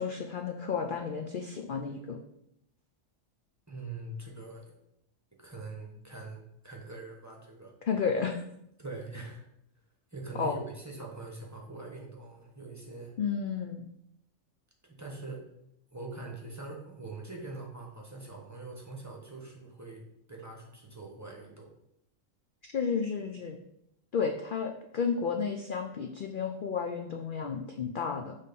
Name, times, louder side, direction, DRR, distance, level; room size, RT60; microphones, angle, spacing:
voice 1, 0.0-2.2 7.9-8.3 10.3-10.6 13.2-13.8 22.6-23.6 24.1-28.3, left 6 dB, 55° left, 3 dB, 0.6 m, -32 dB
voice 2, 3.7-4.7 5.4-7.7 8.8-9.4 10.1-13.1 14.8-15.5 15.9-21.7, right 3 dB, 15° right, -1 dB, 1.0 m, -43 dB
6.5 x 3.5 x 5.2 m, 0.78 s
omnidirectional pair, 1.3 m